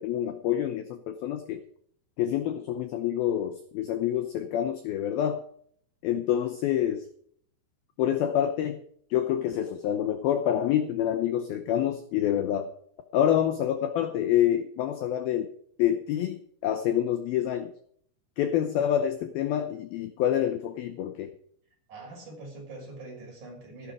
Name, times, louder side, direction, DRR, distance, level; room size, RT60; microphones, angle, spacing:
voice 1, 0.0-1.6 2.2-5.4 6.0-7.0 8.0-8.8 9.1-12.7 13.1-15.5 15.8-17.7 18.4-21.3, left 10 dB, 90° left, 8 dB, 2.1 m, -27 dB
voice 2, 21.9-23.9, right 2 dB, 40° right, -1 dB, 7.4 m, -43 dB
14.5 x 12.0 x 4.8 m, 0.63 s
omnidirectional pair, 5.5 m